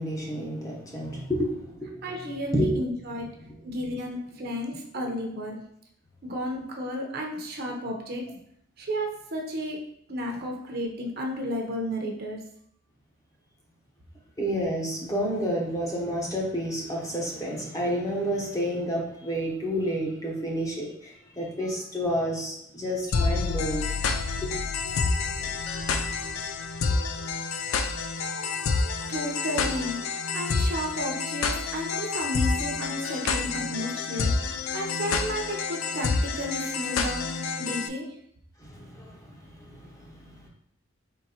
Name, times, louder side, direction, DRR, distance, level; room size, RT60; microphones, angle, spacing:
voice 1, 0.0-2.0 2.5-2.9 3.2-3.3 14.4-23.8 24.4-24.5 38.6-40.5, equal, 15° left, -2 dB, 0.7 m, -30 dB
voice 2, 2.0-3.3 3.6-5.6 6.2-8.4 8.8-9.8 10.1-12.4 29.1-30.0 30.3-34.3 34.7-38.1, equal, 50° right, 0 dB, 0.7 m, -32 dB
sound 1, 23.1-37.9, left 4 dB, 85° left, 0.4 m, -28 dB
4.3 x 3.8 x 2.9 m, 0.71 s
head